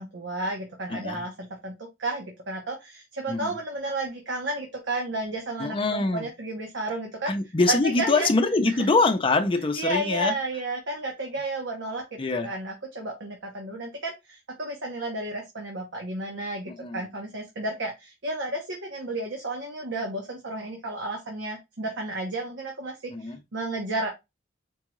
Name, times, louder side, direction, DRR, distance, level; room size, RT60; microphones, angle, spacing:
voice 1, 0.0-7.3 7.7-8.3 8.7-8.9 9.7-24.1, right 2 dB, 70° right, 0.9 m, -32 dB
voice 2, 0.9-1.2 3.3-3.5 5.6-6.3 7.3-10.3 12.2-12.5 16.7-17.1 23.1-23.4, left 3 dB, 30° left, 0.6 m, -24 dB
4.5 x 2.4 x 3.0 m
head